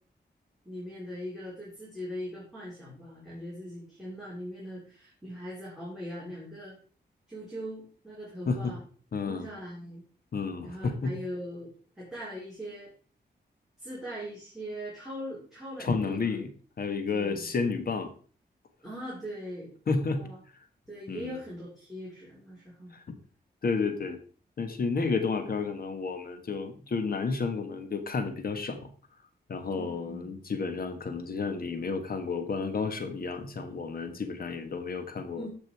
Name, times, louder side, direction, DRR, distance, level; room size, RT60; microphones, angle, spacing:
voice 1, 0.6-6.8 7.3-8.8 9.2-10.0 10.6-11.7 12.0-12.9 13.8-16.3 17.1-17.5 18.8-19.7 20.1-20.4 20.9-22.9 29.7-30.4 35.4-35.5, equal, ahead, -7 dB, 3.7 m, -40 dB
voice 2, 9.1-9.5 10.3-11.1 15.8-16.5 16.8-18.1 19.9-20.2 21.1-21.4 22.9-23.2 23.6-24.2 24.6-28.9 29.5-35.5, left 4 dB, 55° left, 8 dB, 1.3 m, -31 dB
14.0 x 5.2 x 4.6 m, 0.42 s
wide cardioid pair, 125°, 18 cm